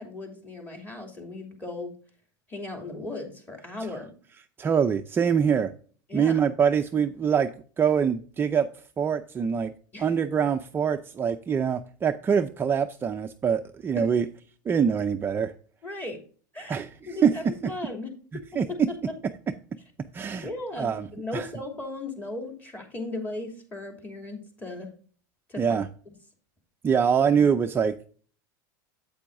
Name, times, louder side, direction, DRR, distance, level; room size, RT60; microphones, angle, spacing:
voice 1, 0.0-1.9 2.5-4.1 6.1-6.4 9.9-10.1 14.0-14.1 15.8-16.2 16.5-16.8 17.0-18.4 18.7-18.8 20.4-24.9 25.5-25.8, left 2 dB, 15° left, 2 dB, 2.8 m, -37 dB
voice 2, 4.6-5.7 6.1-7.5 7.8-8.7 9.0-9.7 10.0-14.2 14.7-15.5 16.7-17.3 18.6-18.7 20.1-20.5 20.8-21.1 21.3-21.5 25.6-25.9 26.8-27.9, right 7 dB, 20° right, 6 dB, 0.5 m, -24 dB
8.4 x 8.4 x 2.6 m, 0.42 s
supercardioid pair, 120°, 10 cm